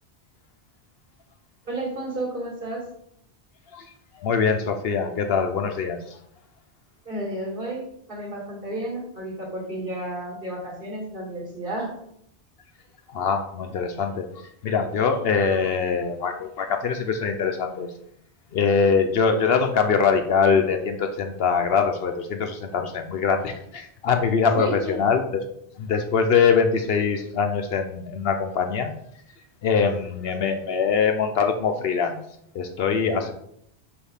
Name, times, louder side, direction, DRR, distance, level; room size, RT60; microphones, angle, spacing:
voice 1, 1.7-2.8 7.0-12.0 24.5-25.0, right 1 dB, 50° right, -5 dB, 2.7 m, -32 dB
voice 2, 4.1-6.2 13.1-17.9 18.5-25.2 25.8-28.9 29.6-32.2 32.5-33.3, left 5 dB, 65° left, 6 dB, 0.8 m, -23 dB
6.7 x 2.6 x 5.6 m, 0.73 s
omnidirectional pair, 1.1 m